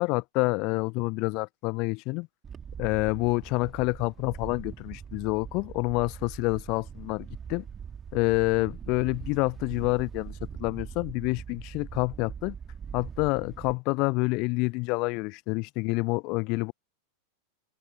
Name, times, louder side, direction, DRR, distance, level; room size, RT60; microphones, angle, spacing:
voice 1, 0.0-2.3 2.8-7.6 8.1-12.5 12.9-16.7, left 27 dB, 40° left, 0.4 m, -28 dB
Wind, 2.4-13.7, right 7 dB, 20° right, 2.3 m, -42 dB
figure-of-eight pair, 90°, 0 cm